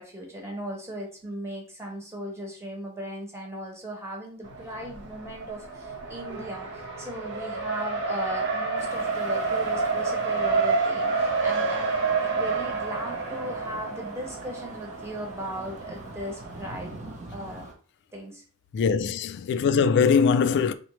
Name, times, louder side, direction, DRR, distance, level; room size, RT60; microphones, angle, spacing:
voice 1, 0.0-17.0 17.3-17.6 18.1-18.4, equal, 10° right, 1.1 m, -37 dB
Race car auto racing, 4.4-17.1, right 4 dB, 55° right, 1.0 m, -29 dB
sound 1, 8.8-17.7, right 2 dB, 35° right, 0.8 m, -44 dB
voice 2, 18.7-20.7, left 6 dB, 50° left, 0.3 m, -21 dB
3.9 x 3.1 x 3.1 m
head